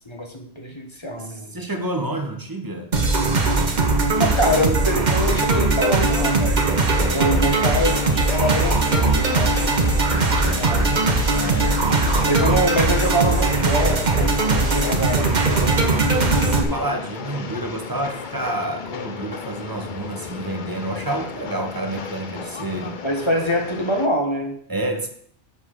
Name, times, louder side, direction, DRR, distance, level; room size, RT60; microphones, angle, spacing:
voice 1, 0.1-1.5 4.2-6.7 7.1-10.9 12.2-16.5 23.0-24.6, equal, 25° left, 2 dB, 1.2 m, -25 dB
voice 2, 1.2-2.9 11.3-12.6 16.2-23.0 24.7-25.1, right 1 dB, 20° right, 5 dB, 1.0 m, -29 dB
sound 1, 2.9-16.6, right 3 dB, 40° right, 1.2 m, -19 dB
Train, 7.0-24.1, left 6 dB, 50° left, 0.8 m, -34 dB
6.8 x 5.6 x 6.4 m, 0.63 s
omnidirectional pair, 1.2 m